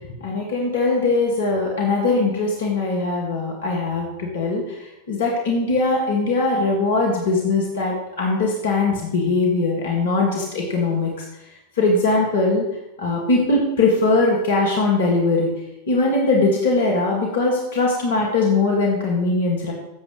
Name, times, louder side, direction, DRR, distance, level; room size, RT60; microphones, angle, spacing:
voice 1, 0.2-11.2 11.8-12.6 13.0-15.5 15.9-19.7, left 3 dB, 60° left, -1 dB, 2.3 m, -21 dB
15.0 x 7.5 x 3.4 m, 0.92 s
figure-of-eight pair, 90°, 0 cm